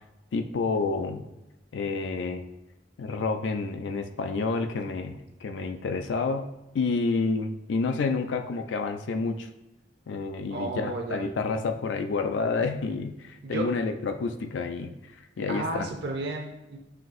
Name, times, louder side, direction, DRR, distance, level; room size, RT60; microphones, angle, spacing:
voice 1, 0.3-1.2 1.7-2.4 3.0-6.5 6.7-9.5 10.1-15.9, left 4 dB, 85° left, 7 dB, 0.4 m, -29 dB
voice 2, 10.5-11.3 13.4-13.7 15.5-16.8, right 2 dB, 65° right, 2 dB, 0.5 m, -32 dB
5.8 x 2.6 x 2.5 m, 0.95 s
head